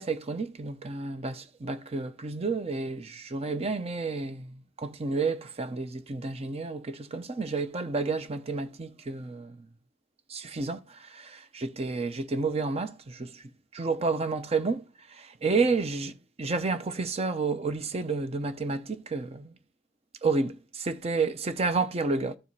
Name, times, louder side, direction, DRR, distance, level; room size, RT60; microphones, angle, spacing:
voice 1, 0.0-9.6 10.3-13.4 13.7-14.8 15.2-16.1 16.4-19.5 20.2-22.4, right 4 dB, 30° right, 0.6 m, -30 dB
14.0 x 4.7 x 2.7 m
head